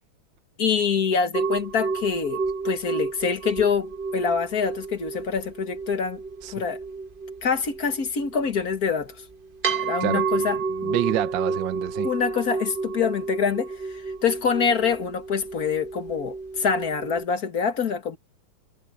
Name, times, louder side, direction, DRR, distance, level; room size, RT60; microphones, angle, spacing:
voice 1, 0.6-6.2 6.5-6.8 7.4-9.1 9.7-11.0 12.0-13.7 14.2-18.2, left 6 dB, 45° left, 2.1 m, -25 dB
sound 1, 1.3-17.2, right 4 dB, 35° right, 0.9 m, -31 dB
voice 2, 10.0-12.1, right 13 dB, 70° right, 1.5 m, -28 dB
omnidirectional pair, 2.3 m